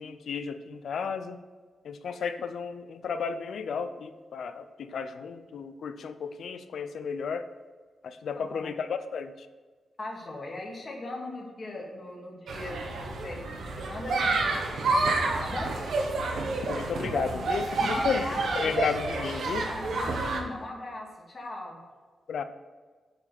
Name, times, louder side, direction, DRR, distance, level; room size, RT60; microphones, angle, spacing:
voice 1, 0.0-1.4 1.8-7.5 8.0-9.3 16.7-18.2 18.6-19.7 22.3-22.4, left 6 dB, 70° left, 10 dB, 0.6 m, -33 dB
voice 2, 8.4-8.7 10.0-15.7 17.8-18.8 19.6-21.8, left 2 dB, 30° left, -2 dB, 2.1 m, -39 dB
sound 1, 12.5-20.4, right 3 dB, 70° right, 1.3 m, -29 dB
9.2 x 4.9 x 7.8 m, 1.4 s
wide cardioid pair, 175°, 0 cm